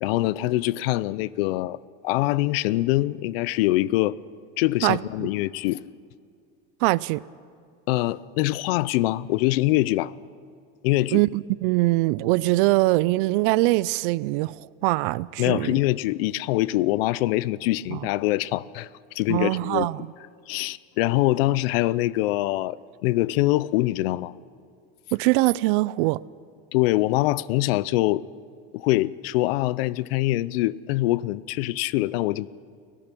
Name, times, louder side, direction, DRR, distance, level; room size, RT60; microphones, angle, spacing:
voice 1, 0.0-1.8 2.0-4.2 4.6-5.8 7.9-10.1 10.8-11.2 15.4-18.9 19.1-19.9 20.5-24.3 26.7-28.2 28.7-32.5, left 17 dB, 75° left, 0.6 m, -24 dB
voice 2, 6.8-7.2 11.1-14.5 14.8-15.8 17.9-18.0 19.3-20.1 25.1-26.2, right 20 dB, 60° right, 0.4 m, -22 dB
24.0 x 17.5 x 6.1 m
cardioid pair, 165°, 29 cm